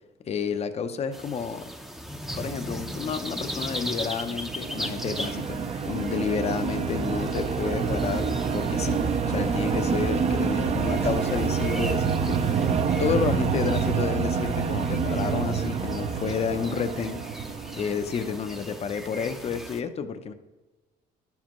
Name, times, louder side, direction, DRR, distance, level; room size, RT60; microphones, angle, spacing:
voice 1, 0.3-1.7 2.3-12.4 13.0-17.2 17.8-20.3, left 6 dB, 40° left, 9 dB, 0.7 m, -30 dB
sound 1, 1.1-19.8, equal, ahead, 0.7 m, -39 dB
sound 2, 4.0-18.5, right 5 dB, 40° right, 0.7 m, -27 dB
11.0 x 7.3 x 3.0 m, 1.2 s
cardioid pair, 110°, 17 cm